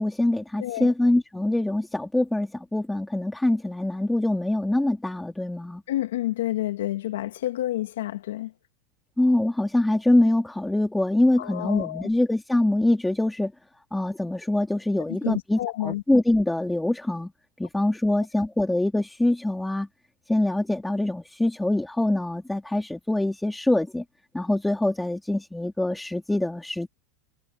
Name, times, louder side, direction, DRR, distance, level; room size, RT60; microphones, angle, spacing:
voice 1, 0.0-5.8 9.2-13.5 13.9-17.3 17.6-19.9 20.3-24.0 24.3-26.9, left 1 dB, 5° left, 3.7 m, -24 dB
voice 2, 0.6-0.9 5.9-8.5 11.4-12.1 15.2-16.0, left 14 dB, 90° left, 2.2 m, -29 dB
supercardioid pair, 125°, 0 cm